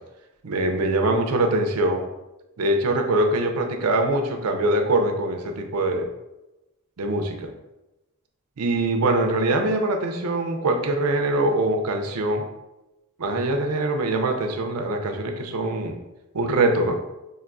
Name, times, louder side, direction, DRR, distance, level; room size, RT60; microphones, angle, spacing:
voice 1, 0.4-2.1 2.6-6.1 7.0-7.5 8.6-12.5 13.2-16.0 16.3-17.0, right 2 dB, 85° right, 4 dB, 0.5 m, -23 dB
5.6 x 2.6 x 2.5 m, 0.99 s
head